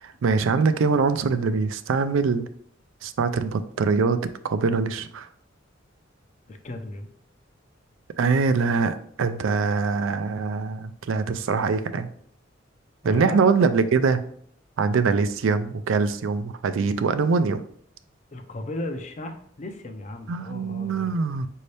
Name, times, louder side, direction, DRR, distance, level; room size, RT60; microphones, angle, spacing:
voice 1, 0.0-2.5 3.0-5.3 8.2-12.1 13.0-14.2 14.8-17.6 20.3-21.5, right 4 dB, 85° right, 12 dB, 0.4 m, -23 dB
voice 2, 6.5-7.1 13.0-13.4 18.3-21.2, left 1 dB, 35° left, 7 dB, 0.5 m, -35 dB
5.3 x 2.7 x 3.3 m, 0.62 s
head